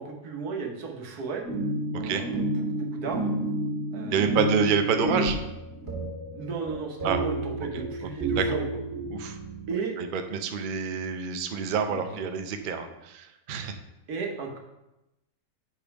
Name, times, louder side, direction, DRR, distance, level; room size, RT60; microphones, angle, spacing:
voice 1, 0.0-1.4 1.9-3.3 3.9-4.6 5.0-5.2 6.3-8.8 9.7-10.0 11.9-12.2 14.1-14.6, right 5 dB, 85° right, 2 dB, 1.5 m, -34 dB
sound 1, 1.4-9.7, right 1 dB, 45° right, 2.0 m, -30 dB
voice 2, 4.1-5.4 7.0-7.2 7.6-7.8 8.3-8.6 9.1-9.4 10.0-13.7, right 6 dB, 60° right, 6 dB, 0.5 m, -28 dB
5.1 x 4.4 x 5.9 m, 0.94 s
omnidirectional pair, 1.6 m